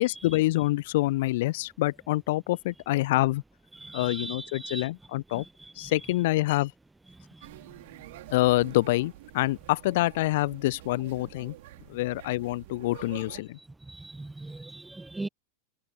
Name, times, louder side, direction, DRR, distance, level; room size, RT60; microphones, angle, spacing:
voice 1, 0.0-3.4 3.9-5.4 5.8-6.7 8.3-11.5 11.9-13.6, left 18 dB, 50° left, 0.5 m, -26 dB
voice 2, 3.7-4.9 5.3-5.9 13.9-15.3, right 2 dB, 5° right, 1.0 m, -40 dB
sound 1, 7.4-13.4, right 17 dB, 55° right, 3.0 m, -48 dB
figure-of-eight pair, 90°, 0 cm